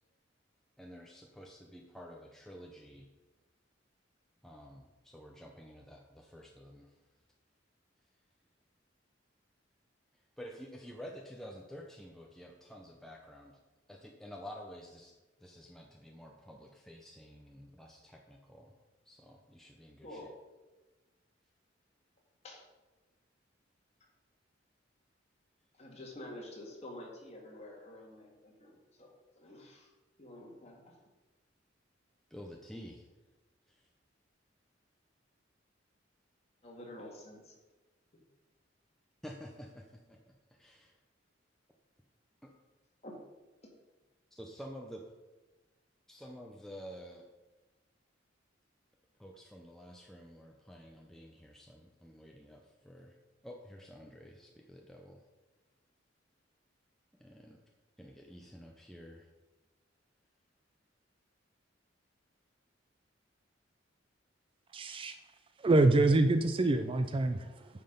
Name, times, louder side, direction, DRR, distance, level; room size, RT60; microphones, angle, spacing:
voice 1, 0.8-3.1 4.4-6.9 10.4-13.5 13.9-15.1 15.4-18.7 19.1-20.3 32.3-33.0 39.2-40.9 42.4-42.5 44.3-45.0 46.1-47.3 49.2-53.1 53.4-55.2 57.1-57.6 58.0-59.3, equal, ahead, 0 dB, 0.7 m, -50 dB
voice 2, 25.8-29.1 29.3-29.9 30.2-31.0 36.6-37.5 43.0-43.1, left 1 dB, 35° left, -1 dB, 2.1 m, -48 dB
voice 3, 64.7-65.2 65.6-67.7, right 2 dB, 30° right, 9 dB, 0.4 m, -26 dB
9.5 x 5.8 x 5.2 m, 1.2 s
head